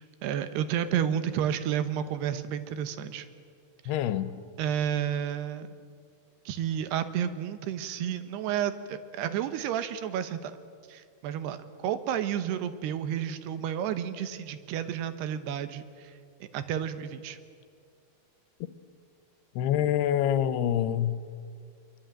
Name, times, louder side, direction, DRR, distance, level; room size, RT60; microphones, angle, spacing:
voice 1, 0.0-3.3 4.6-5.7 6.5-10.6 10.9-17.4, right 9 dB, 85° right, 3.2 m, -31 dB
voice 2, 3.9-4.3 19.6-21.2, left 10 dB, 85° left, 3.0 m, -26 dB
23.5 x 23.5 x 9.1 m
omnidirectional pair, 4.6 m